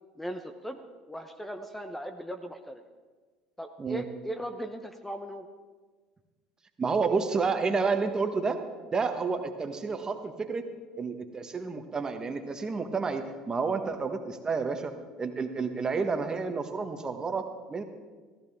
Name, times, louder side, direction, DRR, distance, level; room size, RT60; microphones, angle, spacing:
voice 1, 0.2-0.8 1.1-2.8 3.6-5.5, equal, 5° left, 6 dB, 1.0 m, -38 dB
voice 2, 6.8-8.6 8.9-10.6 11.0-17.8, right 4 dB, 30° right, 6 dB, 1.5 m, -30 dB
16.0 x 15.0 x 3.7 m, 1.4 s
hypercardioid pair, 70°, 2 cm